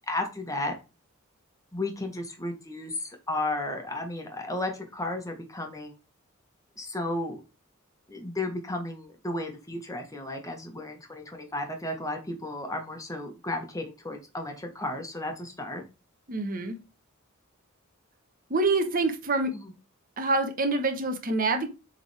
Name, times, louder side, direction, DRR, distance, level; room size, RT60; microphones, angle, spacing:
voice 1, 0.1-0.7 1.7-5.9 6.8-7.4 8.1-15.8 19.5-19.7, left 2 dB, 15° left, 3 dB, 1.5 m, -33 dB
voice 2, 16.3-16.8 18.5-19.5 20.2-21.7, right 3 dB, 40° right, 5 dB, 1.3 m, -26 dB
7.1 x 3.8 x 3.5 m, 0.29 s
head